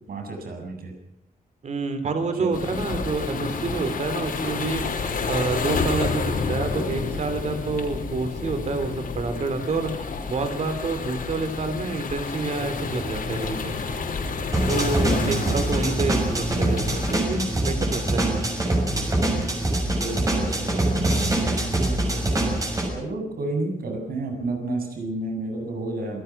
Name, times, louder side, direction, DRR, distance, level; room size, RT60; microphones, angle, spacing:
voice 1, 0.1-0.9 2.4-2.5 15.2-15.6 20.0-21.1 22.9-26.2, right 2 dB, 80° right, 3 dB, 7.6 m, -30 dB
voice 2, 1.6-4.8 5.2-9.9 10.3-13.8 14.7-18.5 21.8-22.5, right 3 dB, 50° right, 9 dB, 3.7 m, -28 dB
sound 1, 2.5-17.2, left 4 dB, 70° left, 5.4 m, -30 dB
sound 2, 14.5-22.9, right 1 dB, 20° right, 6.3 m, -24 dB
27.0 x 19.5 x 6.1 m, 0.79 s
wide cardioid pair, 165°, 15 cm